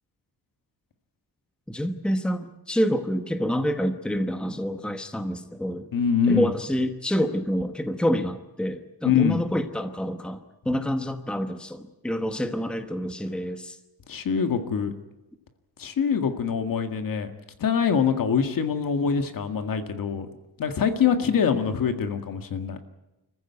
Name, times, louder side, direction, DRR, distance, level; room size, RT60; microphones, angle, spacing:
voice 1, 1.7-5.9 6.3-13.8 21.2-21.6, equal, 5° left, 8 dB, 1.1 m, -27 dB
voice 2, 5.9-6.5 9.0-9.4 14.1-14.9 15.8-17.3 17.6-20.3 20.6-22.8, left 7 dB, 65° left, 7 dB, 1.9 m, -24 dB
26.0 x 14.5 x 9.4 m, 1.0 s
wide cardioid pair, 160°, 36 cm